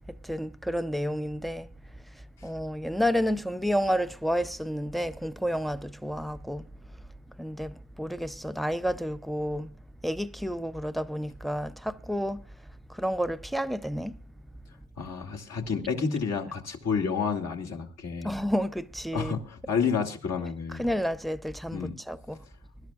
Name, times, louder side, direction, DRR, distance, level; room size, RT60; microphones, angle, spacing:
voice 1, 0.1-1.7 2.1-6.6 7.4-9.7 10.0-12.5 12.9-14.2 18.2-19.3 20.8-22.4, equal, ahead, 0.6 m, -30 dB
voice 2, 15.0-18.3 19.1-20.8 21.7-21.9, left 5 dB, 55° left, 2.4 m, -30 dB
23.5 x 12.0 x 2.4 m
cardioid pair, 90°, 30 cm